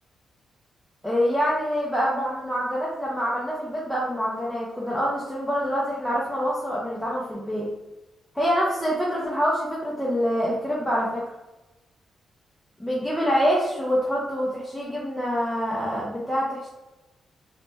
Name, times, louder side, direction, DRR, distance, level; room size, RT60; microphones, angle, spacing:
voice 1, 1.0-7.7 8.3-11.2 12.8-16.7, equal, ahead, -5 dB, 0.4 m, -26 dB
3.0 x 2.1 x 3.0 m, 1.0 s
wide cardioid pair, 155°, 0 cm